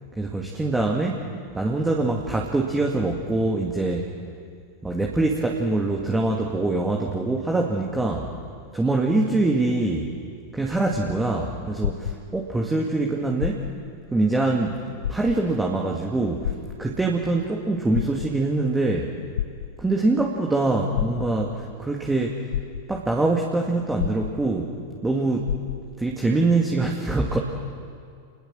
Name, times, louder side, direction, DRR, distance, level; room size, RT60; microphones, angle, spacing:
voice 1, 0.2-1.3 1.5-4.0 4.8-8.3 8.7-10.1 10.5-13.7 14.1-14.8 15.1-16.5 16.8-19.1 19.8-22.5 22.9-24.7 25.0-25.5 26.0-27.4, right 2 dB, 10° right, -1 dB, 2.3 m, -24 dB
sound 1, 10.8-12.7 13.3-14.0 14.4-14.5 15.0-15.7 16.4-17.3 17.8-18.6 19.4-20.1 20.9-21.6 22.2-22.3 22.5-23.2 24.0-24.8 25.1-25.2 25.5-26.1 26.8-26.9, left 10 dB, 65° left, 0.6 m, -30 dB
29.5 x 21.0 x 6.4 m, 2.2 s
figure-of-eight pair, 90°, 0 cm